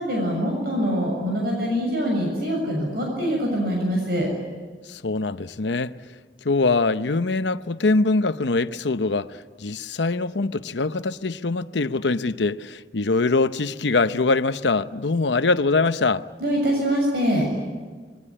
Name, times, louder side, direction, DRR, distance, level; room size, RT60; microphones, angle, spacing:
voice 1, 0.0-4.3 16.4-17.5, equal, 60° right, 6.9 m, -24 dB
voice 2, 4.9-5.9 6.4-16.3, left 3 dB, 85° left, 0.8 m, -23 dB
27.0 x 22.0 x 9.9 m
head